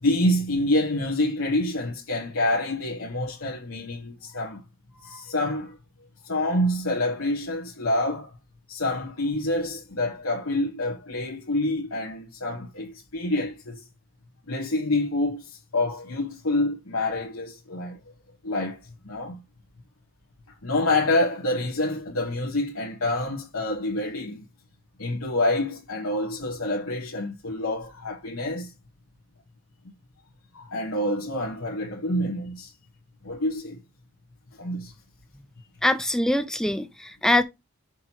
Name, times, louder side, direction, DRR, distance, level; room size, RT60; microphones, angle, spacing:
voice 1, 0.0-4.6 4.9-5.8 6.2-8.3 8.7-13.9 14.5-18.0 18.4-19.4 20.6-24.5 25.0-28.7 30.5-32.7 33.2-33.8 34.6-34.9, left 1 dB, 70° left, 1.4 m, -27 dB
voice 2, 35.8-37.4, left 1 dB, ahead, 0.3 m, -23 dB
6.3 x 3.0 x 5.6 m
head